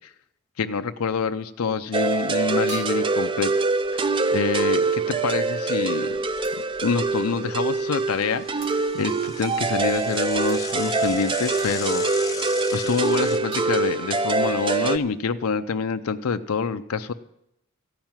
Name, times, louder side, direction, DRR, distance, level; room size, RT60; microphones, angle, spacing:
voice 1, 0.6-6.2 6.8-12.3 12.7-17.1, left 5 dB, 80° left, 9 dB, 0.5 m, -27 dB
sound 1, 1.4-1.6 2.7-3.3 6.4-6.7 8.6-8.9 10.5-10.6 11.6-12.1 13.5-14.3, right 4 dB, 60° right, 2.4 m, -39 dB
sound 2, 1.9-15.0, right 3 dB, 25° right, 0.4 m, -24 dB
Bicycle / Mechanisms, 3.8-4.5 4.8-4.9 5.2-5.3 5.9-7.1 7.5-13.4, left 5 dB, 15° left, 0.7 m, -38 dB
14.5 x 5.9 x 8.9 m, 0.80 s
head